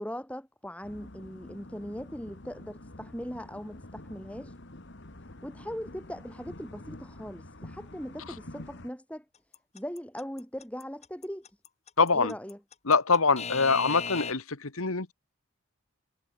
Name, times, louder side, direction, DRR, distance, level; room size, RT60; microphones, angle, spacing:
voice 1, 0.0-4.5 5.4-9.2 9.7-11.5 12.1-12.6, equal, 5° left, 6.2 m, -39 dB
sound 1, 0.8-8.9, left 1 dB, 50° left, 1.8 m, -47 dB
Alarm / Clock, 9.5-14.3, left 5 dB, 30° left, 3.0 m, -36 dB
voice 2, 12.0-12.3 12.8-15.1, left 4 dB, 70° left, 1.6 m, -24 dB
head